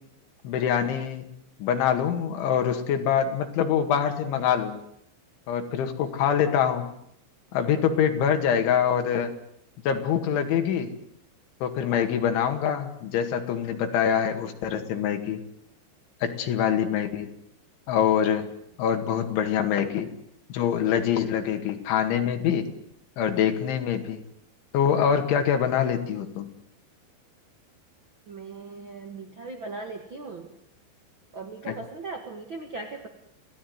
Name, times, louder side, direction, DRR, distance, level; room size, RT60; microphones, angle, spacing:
voice 1, 0.4-1.3 1.6-4.8 5.5-6.9 7.5-9.3 9.9-10.9 11.6-15.4 16.2-17.3 17.9-18.5 18.8-20.1 20.5-22.7 23.2-24.2 24.7-26.5 31.7-31.8, left 8 dB, 80° left, 6 dB, 4.5 m, -24 dB
voice 2, 28.3-30.5 31.3-33.1, right 3 dB, 55° right, 5 dB, 1.3 m, -38 dB
27.0 x 17.5 x 9.5 m, 0.73 s
omnidirectional pair, 5.4 m